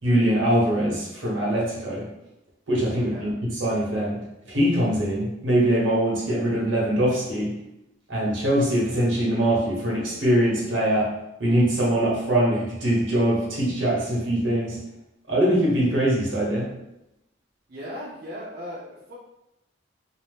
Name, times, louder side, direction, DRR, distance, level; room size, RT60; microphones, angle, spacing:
voice 1, 0.0-2.1 2.7-7.5 8.1-11.1 11.4-14.8 15.3-16.7, right 1 dB, 85° right, -5 dB, 1.1 m, -23 dB
voice 2, 17.7-19.2, equal, 55° right, -6 dB, 0.5 m, -37 dB
2.8 x 2.0 x 3.3 m, 0.87 s
head